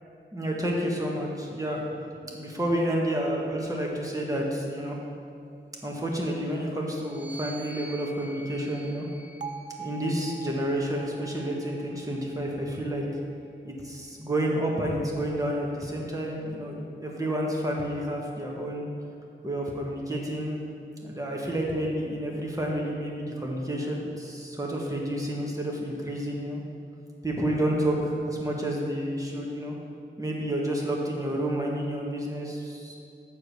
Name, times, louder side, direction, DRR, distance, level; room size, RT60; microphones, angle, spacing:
voice 1, 0.3-1.9 2.3-5.0 5.8-9.1 9.8-13.0 13.6-18.9 19.4-20.6 21.0-26.6 27.2-29.7 30.2-33.0, right 1 dB, 15° right, -2 dB, 1.4 m, -30 dB
sound 1, 7.0-10.6 11.4-13.0, right 2 dB, 60° right, 0.8 m, -48 dB
Bell, 9.4-13.5, right 6 dB, 40° right, 0.4 m, -43 dB
sound 2, 13.8-14.0 15.8-16.1 17.8-18.0 19.7-20.0 21.7-22.0, equal, 10° left, 0.8 m, -46 dB
7.6 x 4.7 x 6.8 m, 2.4 s
wide cardioid pair, 85°, 20 cm